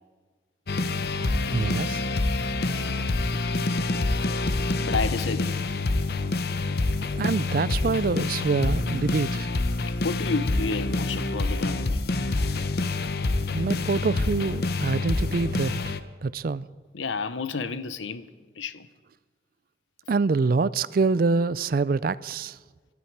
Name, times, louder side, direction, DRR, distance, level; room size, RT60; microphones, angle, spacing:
sound 1, 0.7-16.0, left 2 dB, 55° left, 0.7 m, -27 dB
voice 1, 1.5-2.0 7.2-9.5 13.5-16.7 20.1-22.6, right 4 dB, 50° right, 0.4 m, -25 dB
voice 2, 4.9-5.6 9.9-12.0 16.9-18.3 18.6-18.9, left 4 dB, 85° left, 0.8 m, -30 dB
24.5 x 12.5 x 4.7 m
head